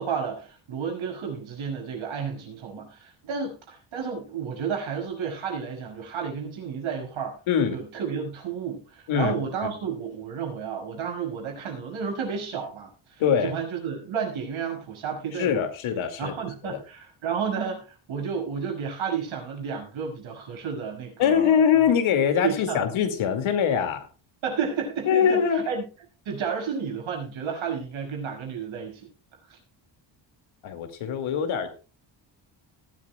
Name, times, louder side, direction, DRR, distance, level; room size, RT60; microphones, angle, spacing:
voice 1, 0.0-7.4 7.7-15.6 16.2-21.6 22.4-22.8 24.4-25.9 26.2-29.1 29.5-29.6, right 6 dB, 75° right, 2 dB, 6.3 m, -32 dB
voice 2, 7.5-7.8 9.1-9.3 13.2-13.5 15.3-16.3 16.6-16.8 21.2-24.1 25.1-25.6 30.6-31.7, left 7 dB, 80° left, 6 dB, 2.4 m, -23 dB
19.5 x 12.5 x 2.3 m, 0.33 s
cardioid pair, 105°, 47 cm